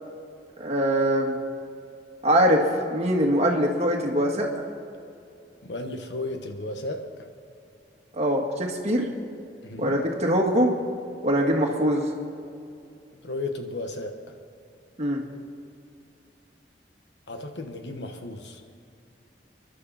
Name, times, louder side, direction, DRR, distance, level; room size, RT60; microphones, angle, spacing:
voice 1, 0.6-1.4 2.2-2.6 2.9-4.5 8.1-9.1 9.8-10.7 11.2-12.1 15.0-15.2, equal, 40° right, 0 dB, 2.0 m, -22 dB
voice 2, 5.6-7.2 9.6-10.0 13.2-14.1 17.3-18.6, left 2 dB, 75° left, 5 dB, 1.3 m, -34 dB
27.0 x 11.5 x 4.2 m, 2.5 s
head